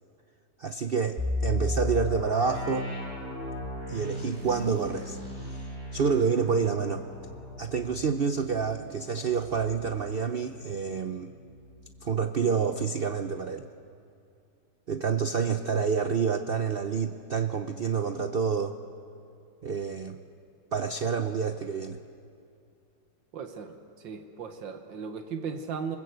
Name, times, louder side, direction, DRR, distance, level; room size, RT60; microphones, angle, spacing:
voice 1, 0.6-2.9 3.9-5.2 5.5-5.6 5.9-7.0 7.6-11.3 12.0-13.6 14.9-18.8 19.6-20.2 20.7-22.0, right 6 dB, 55° right, 8 dB, 0.6 m, -28 dB
sound 1, 1.2-10.9 11.2-11.3 11.9-12.1, left 1 dB, 35° right, 7.3 m, -35 dB
voice 2, 23.3-26.0, right 6 dB, 85° right, 6 dB, 2.1 m, -37 dB
27.0 x 20.5 x 8.0 m, 2.5 s
omnidirectional pair, 2.0 m